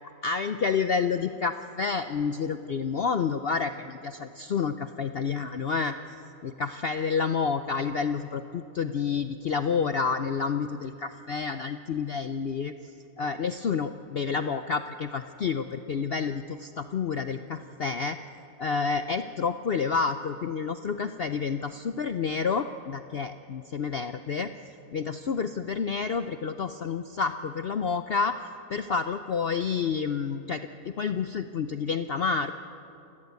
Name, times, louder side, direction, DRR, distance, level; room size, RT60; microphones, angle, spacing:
voice 1, 0.2-5.9 6.4-12.7 13.2-18.2 18.6-24.5 24.9-28.4 28.7-32.5, left 5 dB, 70° left, 10 dB, 0.5 m, -29 dB
28.5 x 17.5 x 8.2 m, 2.9 s
omnidirectional pair, 1.8 m